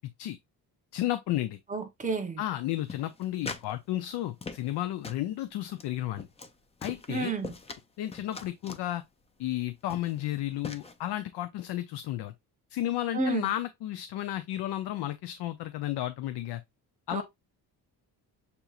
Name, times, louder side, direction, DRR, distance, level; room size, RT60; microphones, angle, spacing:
voice 1, 0.9-1.6 2.4-6.3 6.8-7.3 8.0-9.0 9.4-12.3 12.7-16.6 17.1-17.2, left 14 dB, 90° left, 0.6 m, -32 dB
voice 2, 1.7-2.4 7.1-7.5 13.1-13.5 17.1-17.2, right 3 dB, 20° right, 0.8 m, -31 dB
sound 1, 2.9-3.7 4.0-4.8 5.0-5.3 5.7-5.9 6.2-6.5 6.8-7.8 8.1-8.9 9.5-9.6 9.9-10.2 10.6-10.9, left 4 dB, 15° left, 0.3 m, -41 dB
6.8 x 2.9 x 2.4 m
cardioid pair, 155°, 39 cm